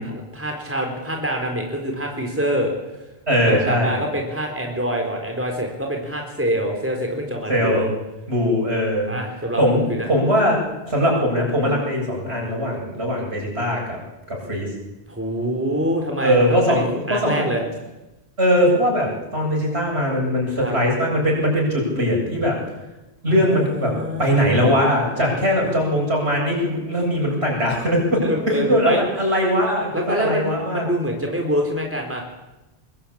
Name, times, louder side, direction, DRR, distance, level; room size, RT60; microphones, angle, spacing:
voice 1, 0.0-2.7 3.5-7.9 9.1-9.8 15.1-17.6 20.6-20.7 23.3-24.7 25.1-25.8 27.2-27.3 28.2-29.0 29.9-32.2, equal, 10° right, 2 dB, 4.1 m, -26 dB
voice 2, 3.3-3.9 7.5-7.9 8.3-9.1 9.6-10.6 10.9-14.0 14.3-14.7 16.2-17.5 18.4-22.6 23.2-30.8, equal, 75° right, -1 dB, 8.5 m, -20 dB
24.0 x 21.5 x 8.8 m, 1.0 s
omnidirectional pair, 1.1 m